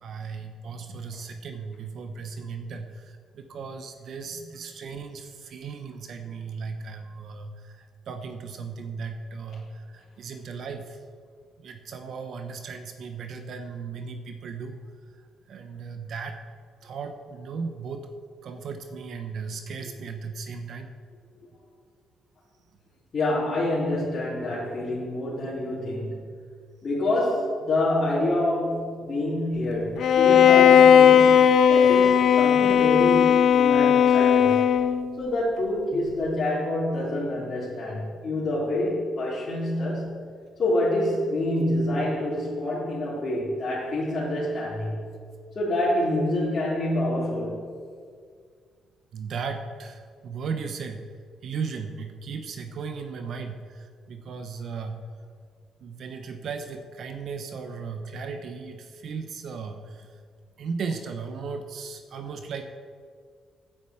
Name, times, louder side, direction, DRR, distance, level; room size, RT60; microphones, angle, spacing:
voice 1, 0.0-11.0 11.6-14.8 15.5-16.4 16.8-18.1 18.4-20.9 49.1-51.1 51.4-55.0 55.8-60.1 60.6-62.6, right 5 dB, 65° right, 7 dB, 0.9 m, -36 dB
voice 2, 23.1-26.2 26.8-34.6 35.2-40.2 40.6-45.0 45.5-47.6, left 1 dB, 45° left, -9 dB, 3.2 m, -27 dB
Bowed string instrument, 30.0-35.1, left 8 dB, 65° left, 0.6 m, -17 dB
9.6 x 9.1 x 7.9 m, 2.1 s
cardioid pair, 90°, 0 cm